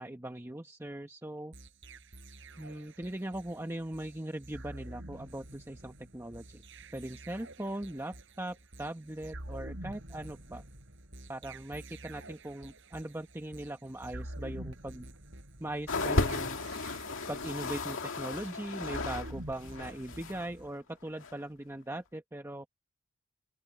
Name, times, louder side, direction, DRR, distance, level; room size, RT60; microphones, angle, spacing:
voice 1, 0.0-1.5 2.6-6.6 6.9-10.6 11.3-15.1 15.6-16.6 17.3-22.7, right 1 dB, 10° right, 1.1 m, -40 dB
sound 1, 1.5-20.7, right 1 dB, 60° right, 6.3 m, -48 dB
sound 2, 15.9-19.3 19.6-20.5 21.2-21.3, left 2 dB, 65° left, 2.2 m, -34 dB
open air
head